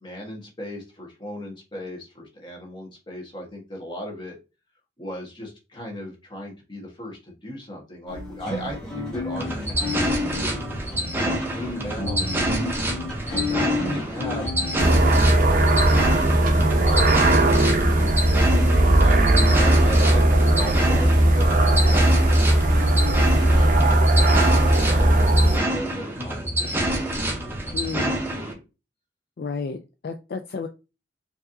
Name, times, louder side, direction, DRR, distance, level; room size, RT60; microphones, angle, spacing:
voice 1, 0.0-4.4 5.0-10.6 11.2-12.7 13.3-17.3 17.6-18.4 19.0-24.0 24.3-28.5, equal, 25° left, 0 dB, 1.3 m, -37 dB
sound 1, 8.1-24.6, left 3 dB, 5° left, 2.0 m, -34 dB
sound 2, 9.4-28.5, right 1 dB, 15° right, 0.7 m, -27 dB
sound 3, 14.8-25.6, right 1 dB, 50° right, 0.6 m, -18 dB
voice 2, 27.7-28.1 29.4-30.7, left 5 dB, 55° left, 7 dB, 0.3 m, -31 dB
4.4 x 2.8 x 2.6 m, 0.28 s
head